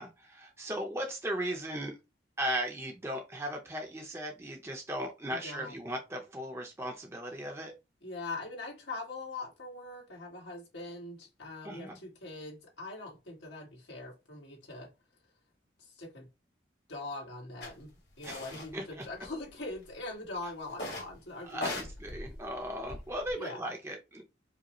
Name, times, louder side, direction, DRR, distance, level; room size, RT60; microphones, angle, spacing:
voice 1, 0.0-1.9 2.4-7.7 11.6-12.0 18.2-19.0 21.4-24.2, right 1 dB, 15° right, 0.6 m, -37 dB
voice 2, 5.3-5.8 8.0-14.9 15.8-16.3 16.9-17.9 18.2-21.8 23.3-23.6, left 2 dB, 80° left, 1.5 m, -42 dB
sound 1, 17.6-17.7 18.2-18.7 19.0-19.7 20.7-21.1 21.5-23.3, left 2 dB, 65° left, 1.5 m, -40 dB
4.9 x 2.0 x 3.0 m
head